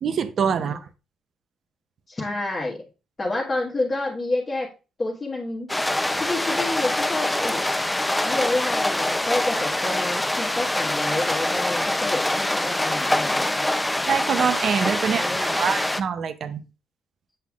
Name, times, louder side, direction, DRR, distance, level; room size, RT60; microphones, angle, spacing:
voice 1, 0.0-0.8 14.1-16.6, right 7 dB, 60° right, 0.6 m, -25 dB
voice 2, 2.1-2.8 3.2-4.7 5.0-5.7 6.1-7.6 8.2-13.6 15.0-15.6, left 2 dB, 30° left, 1.3 m, -29 dB
sound 1, 5.7-16.0, left 1 dB, 10° left, 0.5 m, -24 dB
7.6 x 5.5 x 2.4 m
cardioid pair, 90°, 0 cm